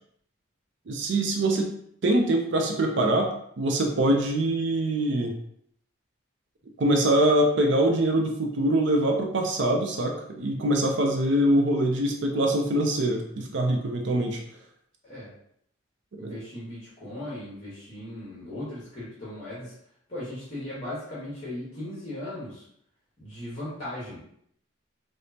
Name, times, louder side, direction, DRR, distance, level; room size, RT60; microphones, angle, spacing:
voice 1, 0.9-1.7 2.0-5.3 6.8-14.4 16.1-16.4, right 1 dB, 60° right, 2 dB, 0.4 m, -24 dB
voice 2, 16.2-19.7 20.1-22.6 23.2-24.2, left 1 dB, 30° left, -9 dB, 1.2 m, -37 dB
4.9 x 2.0 x 2.7 m, 0.70 s
head